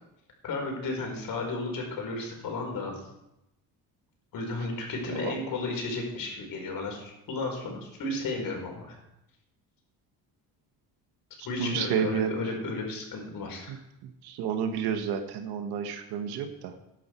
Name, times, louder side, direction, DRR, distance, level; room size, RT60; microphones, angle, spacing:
voice 1, 0.4-3.0 4.3-8.9 11.4-13.7, left 3 dB, 60° left, 1 dB, 4.7 m, -33 dB
voice 2, 11.6-12.4 13.7-13.8 14.0-16.7, right 7 dB, 90° right, 7 dB, 1.6 m, -30 dB
15.5 x 10.5 x 4.6 m, 0.88 s
cardioid pair, 95°, 38 cm